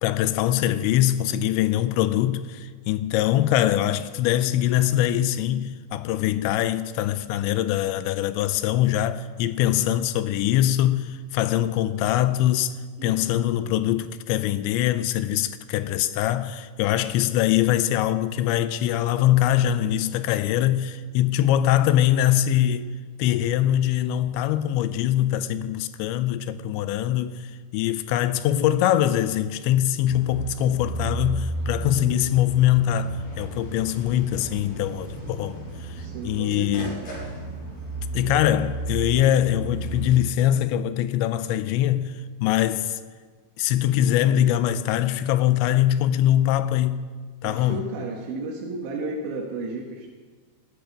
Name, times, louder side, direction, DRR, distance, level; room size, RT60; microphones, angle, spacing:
voice 1, 0.0-12.7 13.0-22.9 23.2-27.4 27.7-36.0 36.2-37.1 38.1-42.1 42.4-43.0 43.6-47.1 47.4-47.9, left 12 dB, 90° left, 3.0 m, -23 dB
voice 2, 13.0-13.3 32.0-32.3 36.0-36.9 47.4-50.1, right 3 dB, 85° right, 3.9 m, -33 dB
sound 1, 30.1-40.2, right 3 dB, 40° left, 6.4 m, -34 dB
19.5 x 13.0 x 5.0 m
omnidirectional pair, 5.1 m